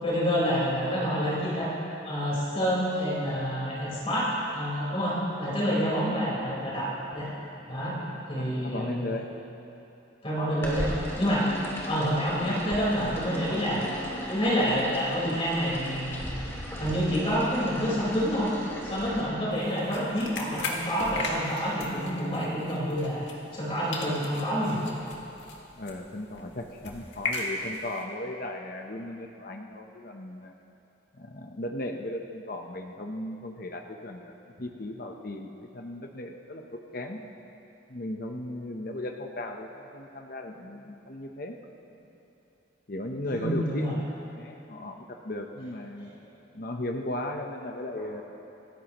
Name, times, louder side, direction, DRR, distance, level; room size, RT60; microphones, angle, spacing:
voice 1, 0.0-1.7 2.0-7.3 7.7-8.0 8.3-9.1 10.2-10.9 11.2-11.5 11.8-13.9 14.3-16.3 16.8-18.5 18.8-23.3 23.5-25.0 43.3-43.9 47.9-48.1, equal, 30° left, -7 dB, 4.5 m, -28 dB
voice 2, 8.4-9.3 25.7-30.5 31.2-34.3 34.6-37.2 37.9-41.5 42.9-44.1 44.3-46.1 46.5-48.2, left 1 dB, 50° left, 3 dB, 0.9 m, -36 dB
sound 1, 10.6-19.2, equal, 15° left, 2.7 m, -37 dB
sound 2, 19.5-23.7 23.9-28.0, left 2 dB, 70° left, 2.0 m, -37 dB
26.5 x 15.0 x 3.1 m, 2.9 s
head